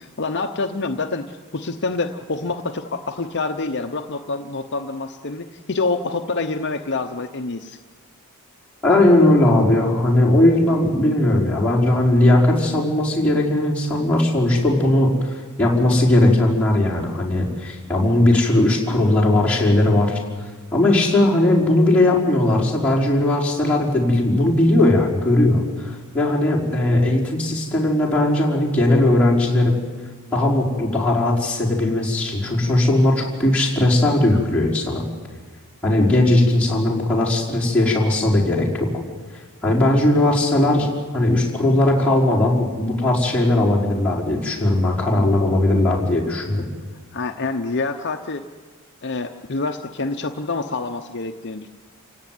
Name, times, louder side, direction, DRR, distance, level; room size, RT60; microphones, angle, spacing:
voice 1, 0.0-7.8 47.1-48.4 49.0-51.7, left 3 dB, 50° left, 6 dB, 0.9 m, -27 dB
voice 2, 8.8-20.2 20.7-29.8 30.3-35.0 35.8-38.9 39.6-46.6, left 1 dB, 5° left, -6 dB, 5.0 m, -18 dB
28.5 x 17.5 x 9.5 m, 1.4 s
head